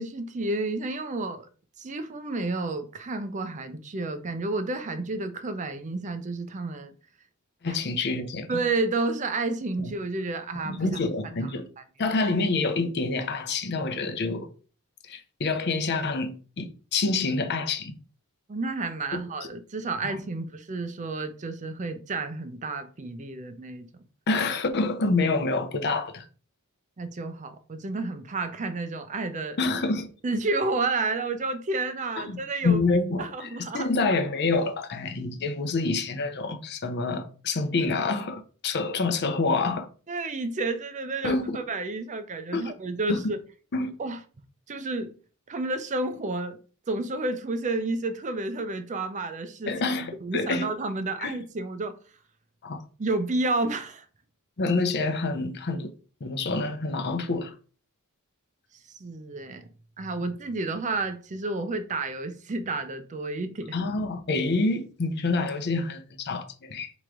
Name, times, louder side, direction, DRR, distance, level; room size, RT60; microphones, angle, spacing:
voice 1, 0.0-1.5 1.8-6.9 8.5-10.9 11.4-11.5 18.5-24.0 27.0-29.6 30.2-32.8 33.2-33.9 40.1-43.4 44.0-44.2 44.7-45.1 45.5-46.6 46.9-49.8 50.2-51.9 53.0-54.1 59.0-59.7 60.0-63.8, right 3 dB, 35° right, 0.5 m, -30 dB
voice 2, 7.6-8.6 9.8-9.9 10.7-11.6 12.0-14.5 15.0-18.0 19.1-19.2 20.0-20.1 24.3-26.2 29.6-30.1 32.2-39.9 41.2-41.6 42.5-42.7 43.1-43.3 43.7-43.9 49.7-50.7 51.2-51.3 52.6-52.8 54.6-55.9 56.2-57.5 63.7-66.9, left 3 dB, 50° left, 0.7 m, -27 dB
3.7 x 3.0 x 4.7 m
head